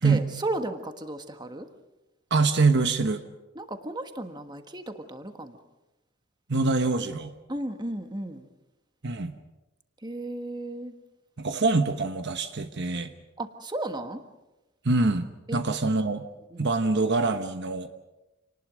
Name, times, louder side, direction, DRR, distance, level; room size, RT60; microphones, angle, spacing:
voice 1, 0.0-1.7 3.5-5.6 7.5-8.5 10.0-10.9 13.4-14.2 15.5-15.6 16.5-16.7, right 1 dB, 20° right, 7 dB, 1.5 m, -34 dB
voice 2, 2.3-3.2 6.5-7.3 9.0-9.3 11.4-13.1 14.8-16.2 16.6-17.9, right 3 dB, 55° right, 8 dB, 1.1 m, -24 dB
28.0 x 19.5 x 6.3 m, 1.0 s
head